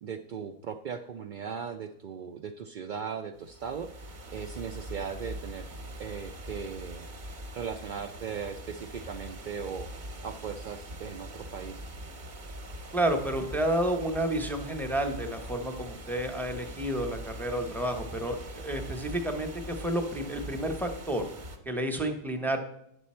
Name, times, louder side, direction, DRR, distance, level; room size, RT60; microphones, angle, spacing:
voice 1, 0.0-5.7 6.0-7.1 7.5-9.9 10.2-12.1, right 6 dB, 85° right, 5 dB, 0.4 m, -38 dB
sound 1, 3.4-21.6, right 1 dB, 40° right, 0.9 m, -43 dB
voice 2, 12.9-21.2 21.6-22.6, right 1 dB, ahead, 3 dB, 0.6 m, -30 dB
9.7 x 6.7 x 4.2 m, 0.76 s
omnidirectional pair, 1.4 m